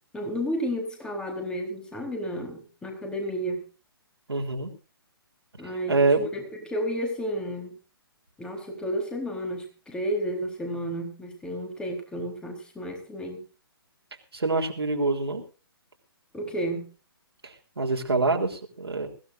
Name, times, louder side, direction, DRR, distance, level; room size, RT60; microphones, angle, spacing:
voice 1, 0.1-3.6 5.6-7.8 8.4-13.4 16.3-16.9, equal, 5° left, 3 dB, 4.0 m, -32 dB
voice 2, 4.3-4.7 5.9-6.2 14.3-15.4 17.4-19.1, right 3 dB, 80° right, 1 dB, 3.6 m, -25 dB
22.0 x 16.0 x 2.6 m, 0.35 s
figure-of-eight pair, 130°, 13 cm